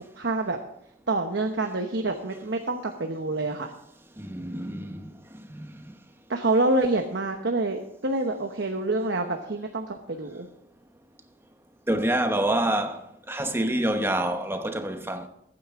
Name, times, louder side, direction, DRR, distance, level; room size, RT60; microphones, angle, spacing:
voice 1, 0.1-0.6 1.1-3.7 6.3-10.5, right 2 dB, 65° right, 1.0 m, -27 dB
voice 2, 4.2-5.1 5.5-5.7 11.9-13.0 13.3-15.3, right 1 dB, 15° right, 1.0 m, -27 dB
22.0 x 9.4 x 3.7 m
head